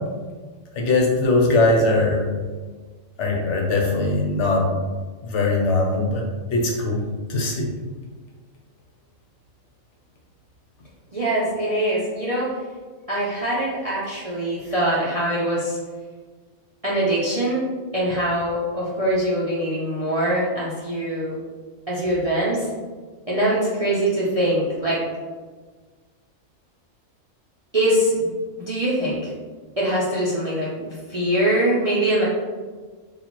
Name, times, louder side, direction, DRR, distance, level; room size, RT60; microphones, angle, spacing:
voice 1, 0.8-2.2 3.2-4.6 5.2-6.2 6.5-7.0 7.3-7.7, left 2 dB, 65° left, -1 dB, 1.0 m, -20 dB
voice 2, 11.1-12.5 13.1-15.8 16.8-17.6 17.9-21.3 21.9-22.7 23.3-25.0 27.7-28.3 28.6-29.2 29.8-32.2, right 1 dB, 40° right, -7 dB, 0.5 m, -23 dB
4.2 x 2.5 x 2.9 m, 1.4 s
omnidirectional pair, 1.4 m